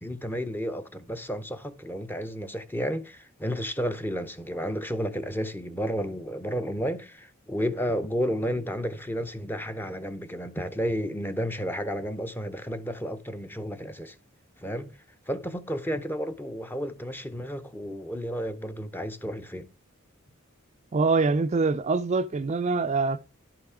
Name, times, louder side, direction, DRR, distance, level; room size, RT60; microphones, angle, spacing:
voice 1, 0.0-14.2 14.6-14.9 15.3-19.7, equal, 10° left, 0.7 m, -32 dB
voice 2, 20.9-23.2, right 4 dB, 35° right, 0.4 m, -24 dB
11.0 x 5.8 x 4.9 m
head